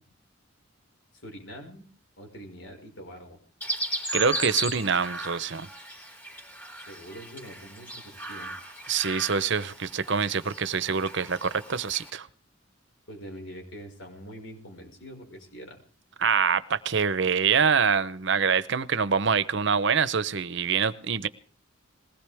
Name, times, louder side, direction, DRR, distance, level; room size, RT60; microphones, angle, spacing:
voice 1, 1.1-1.9 2.2-3.4 6.8-8.5 13.1-15.8, equal, 65° left, 3 dB, 5.4 m, -44 dB
Chirp tweet, 3.6-12.1, right 1 dB, 10° left, 3.9 m, -36 dB
voice 2, 4.1-5.7 8.9-12.3 16.2-21.3, right 6 dB, 60° right, 15 dB, 0.8 m, -25 dB
21.5 x 18.5 x 3.5 m, 0.43 s
head